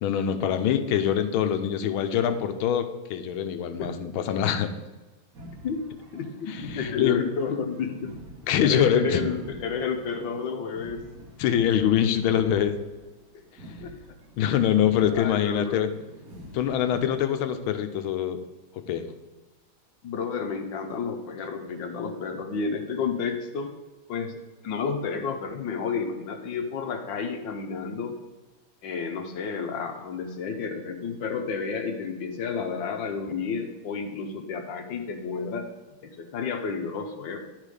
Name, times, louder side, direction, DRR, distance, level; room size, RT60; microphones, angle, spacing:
voice 1, 0.0-4.7 6.5-7.2 8.5-9.2 11.4-12.7 14.4-15.9 16.5-18.4 18.9-19.1, left 9 dB, 85° left, 9 dB, 1.5 m, -24 dB
sound 1, 5.3-17.1, equal, 50° right, 1.7 m, -46 dB
voice 2, 6.1-8.1 8.6-11.0 13.8-13.9 15.1-15.8 20.0-23.7 24.1-24.4 24.6-28.1 28.8-35.7 36.0-37.4, left 5 dB, 70° left, 5 dB, 1.4 m, -31 dB
10.5 x 4.1 x 4.9 m, 1.2 s
omnidirectional pair, 2.2 m